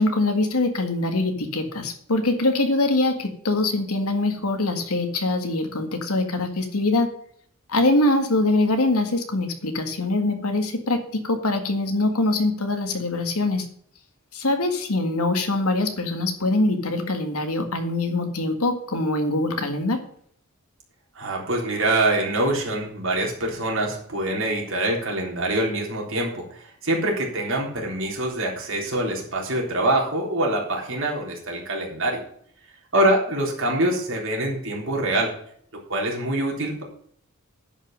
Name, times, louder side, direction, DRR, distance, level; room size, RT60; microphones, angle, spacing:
voice 1, 0.0-7.1 7.7-13.7 14.3-20.0, left 2 dB, 90° left, 6 dB, 1.8 m, -23 dB
voice 2, 21.2-32.2 32.9-35.3 35.7-36.8, right 1 dB, 60° right, -1 dB, 3.6 m, -25 dB
11.0 x 5.6 x 6.5 m, 0.63 s
head